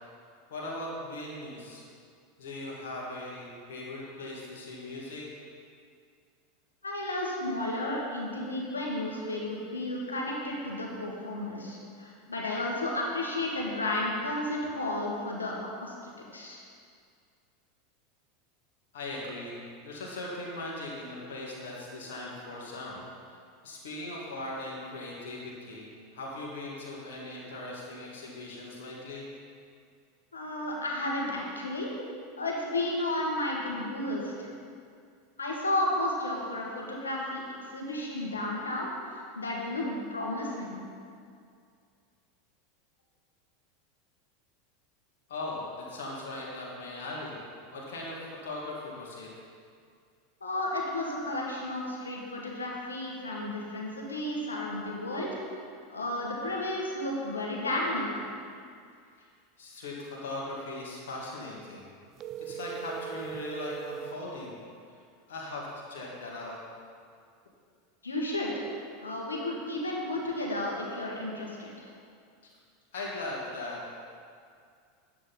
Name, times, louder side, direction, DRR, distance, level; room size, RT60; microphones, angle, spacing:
voice 1, 0.5-1.8 2.4-5.3 18.9-19.6 19.8-23.0 23.6-29.2 45.3-47.4 47.7-49.3 59.2-59.3 59.6-61.9 62.4-64.5 64.9-65.0 65.3-66.6 72.9-73.8, left 2 dB, 65° left, -4 dB, 1.9 m, -39 dB
voice 2, 6.8-15.9 16.3-16.6 30.3-31.9 32.4-34.5 35.4-40.8 50.4-55.4 55.9-58.3 68.0-68.5 69.0-71.9, left 1 dB, 80° left, -2 dB, 1.6 m, -33 dB
sound 1, 62.2-64.3, right 8 dB, 35° right, 0.5 m, -39 dB
9.5 x 7.6 x 4.1 m, 2.3 s
figure-of-eight pair, 85°, 0 cm